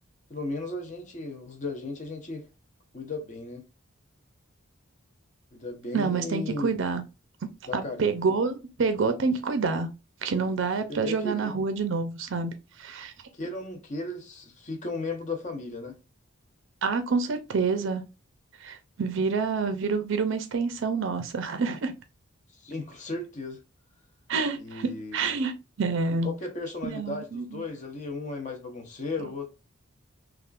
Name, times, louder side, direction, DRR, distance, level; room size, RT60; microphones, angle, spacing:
voice 1, 0.3-2.5 2.9-3.6 5.5-6.8 7.7-8.1 10.9-11.5 13.3-16.0 22.5-23.6 24.6-25.3 26.2-29.5, left 2 dB, 35° left, 0.8 m, -35 dB
voice 2, 5.9-7.0 7.4-9.9 10.2-12.5 12.8-13.1 16.8-18.0 18.6-21.9 24.3-25.5 25.8-26.3 26.8-27.6, right 4 dB, 60° right, 0.5 m, -27 dB
3.5 x 2.4 x 2.4 m
head